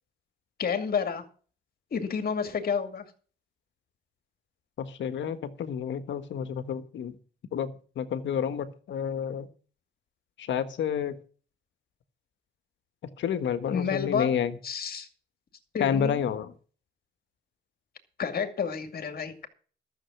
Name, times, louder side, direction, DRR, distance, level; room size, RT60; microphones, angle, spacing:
voice 1, 0.6-1.2 1.9-3.0 13.6-15.1 15.7-16.2 18.2-19.5, left 6 dB, 50° left, 7 dB, 2.4 m, -30 dB
voice 2, 4.8-7.2 7.5-9.5 10.4-11.2 13.2-14.6 15.8-16.5, left 8 dB, 70° left, 11 dB, 1.5 m, -30 dB
13.0 x 7.1 x 7.1 m, 0.40 s
cardioid pair, 90°, 20 cm